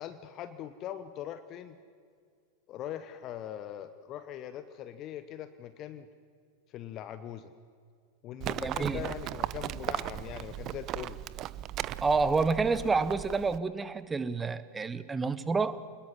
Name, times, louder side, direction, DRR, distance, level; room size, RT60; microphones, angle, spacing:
voice 1, 0.0-1.8 2.7-6.1 6.7-7.5 8.2-11.2 12.7-12.8, left 10 dB, 35° left, 12 dB, 1.1 m, -41 dB
Livestock farm animals working animals, 8.4-13.6, right 13 dB, 35° right, 0.6 m, -37 dB
voice 2, 8.6-9.0 12.0-15.8, right 4 dB, 15° right, 15 dB, 1.1 m, -29 dB
26.5 x 21.0 x 7.6 m, 2.2 s
figure-of-eight pair, 90°, 0 cm